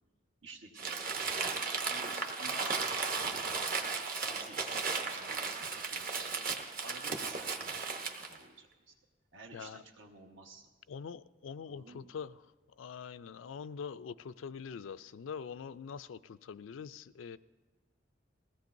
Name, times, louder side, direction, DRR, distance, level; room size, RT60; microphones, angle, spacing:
voice 1, 0.4-1.0 1.8-8.9 9.3-10.6 11.6-12.1, right 3 dB, 80° right, 1.4 m, -53 dB
Crumpling crinkling, 0.8-8.4, right 4 dB, 45° right, 1.0 m, -35 dB
voice 2, 9.5-9.8 10.9-12.4 12.8-17.4, left 6 dB, 85° left, 0.4 m, -44 dB
20.5 x 16.0 x 2.6 m
head